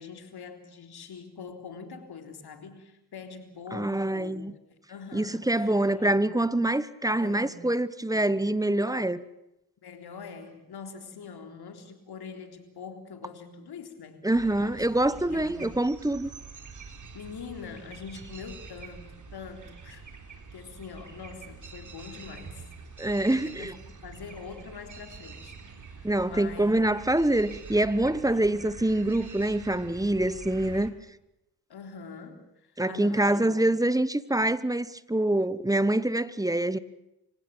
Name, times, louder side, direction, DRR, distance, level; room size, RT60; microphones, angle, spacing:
voice 1, 0.0-4.4 4.7-6.2 7.2-7.6 9.8-15.8 17.1-22.7 23.3-23.7 24.0-26.7 28.2-28.5 31.7-33.5, left 5 dB, 65° left, 3.8 m, -44 dB
voice 2, 3.7-4.5 5.1-9.2 14.2-16.3 23.0-23.7 26.0-30.9 32.8-36.8, right 1 dB, 10° right, 1.1 m, -25 dB
sound 1, 14.3-30.9, right 4 dB, 45° right, 3.6 m, -46 dB
25.5 x 16.5 x 8.9 m
supercardioid pair, 60°, 42 cm